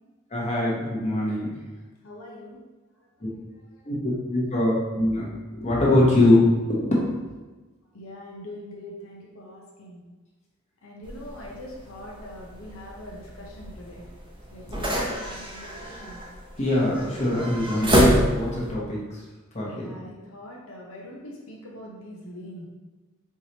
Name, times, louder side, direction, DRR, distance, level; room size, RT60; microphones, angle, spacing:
voice 1, 0.3-1.5 3.2-3.3 3.8-5.3 5.5-7.0 16.6-19.0 19.5-19.9, left 1 dB, 35° left, -6 dB, 1.0 m, -23 dB
voice 2, 2.0-2.6 3.0-3.1 3.7-3.9 7.9-10.0 10.8-14.1 14.5-16.2 19.7-22.7, left 1 dB, 85° left, -3 dB, 0.8 m, -42 dB
sound 1, 11.0-18.7, equal, 25° right, 0.7 m, -27 dB
4.6 x 3.1 x 2.9 m, 1.2 s
head